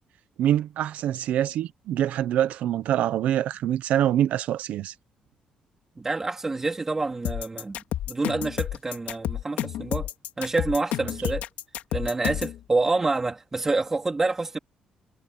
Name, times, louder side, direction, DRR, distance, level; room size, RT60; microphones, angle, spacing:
voice 1, 0.4-4.9, right 11 dB, 70° right, 0.8 m, -25 dB
voice 2, 6.0-7.8 8.1-10.1 10.4-11.4 11.9-14.6, right 3 dB, 15° right, 3.8 m, -27 dB
sound 1, 7.2-12.6, left 12 dB, 80° left, 4.0 m, -30 dB
cardioid pair, 165°, 3 cm